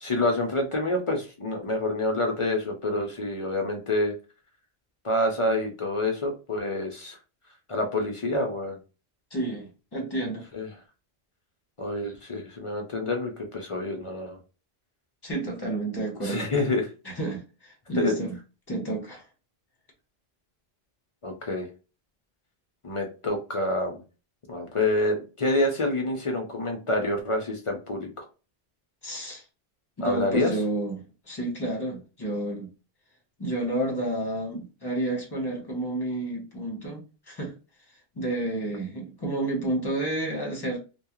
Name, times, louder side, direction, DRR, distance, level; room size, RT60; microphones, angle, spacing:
voice 1, 0.0-4.1 5.0-7.2 7.7-8.8 10.5-10.7 11.8-14.4 16.2-16.9 18.0-18.1 21.2-21.7 22.8-24.0 24.5-28.3 30.0-30.5, left 2 dB, 45° left, 2 dB, 0.4 m, -27 dB
voice 2, 9.3-10.4 15.2-16.5 17.0-18.4 18.7-19.2 29.0-29.4 30.0-32.7 33.4-37.5 38.2-40.8, right 2 dB, 25° left, -1 dB, 0.9 m, -30 dB
2.3 x 2.2 x 2.9 m, 0.31 s
omnidirectional pair, 1.1 m